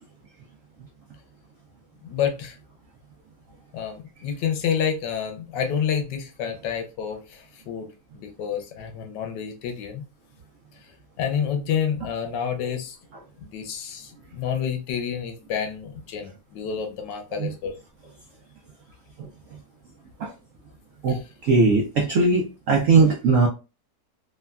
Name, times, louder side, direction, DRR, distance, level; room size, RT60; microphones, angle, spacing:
voice 1, 2.0-2.6 3.7-7.9 8.1-10.0 11.2-13.0 13.4-17.7 21.1-21.2, left 7 dB, 75° left, 4 dB, 1.3 m, -29 dB
voice 2, 21.0-23.5, right 4 dB, 85° right, 1 dB, 0.7 m, -20 dB
3.3 x 2.2 x 2.3 m, 0.31 s
omnidirectional pair, 2.0 m